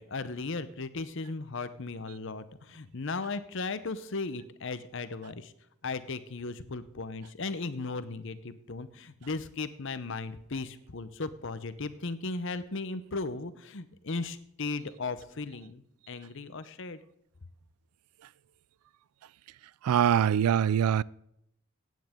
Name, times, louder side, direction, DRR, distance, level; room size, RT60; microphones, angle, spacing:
voice 1, 0.0-5.5 5.8-17.0, left 3 dB, 60° left, 0.8 m, -36 dB
voice 2, 19.8-21.0, right 9 dB, 85° right, 0.3 m, -23 dB
15.5 x 9.3 x 3.7 m
head